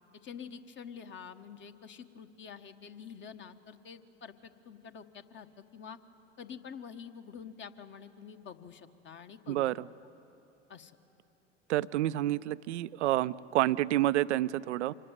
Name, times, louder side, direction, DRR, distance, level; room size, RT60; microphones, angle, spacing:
voice 1, 0.2-6.0 6.4-9.7 10.7-11.0, left 7 dB, 30° left, 8 dB, 1.3 m, -47 dB
voice 2, 9.5-9.9 11.7-14.9, right 15 dB, 70° right, 17 dB, 0.6 m, -29 dB
25.5 x 19.0 x 9.4 m, 3.0 s
figure-of-eight pair, 80°, 37 cm